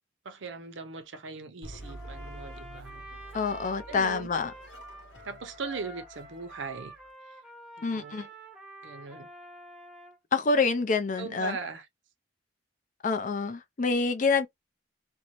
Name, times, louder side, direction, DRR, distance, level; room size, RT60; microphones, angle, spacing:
voice 1, 0.2-2.9 3.9-4.3 5.3-6.9 7.8-8.3 8.8-9.3 11.2-11.9, right 4 dB, 80° right, 0.6 m, -39 dB
sound 1, 1.6-7.1, right 1 dB, 70° left, 1.0 m, -48 dB
Trumpet, 1.8-10.2, right 1 dB, 5° right, 0.7 m, -48 dB
voice 2, 3.3-4.5 7.8-8.3 10.3-11.6 13.0-14.5, left 4 dB, 45° left, 0.4 m, -27 dB
2.6 x 2.1 x 2.9 m
head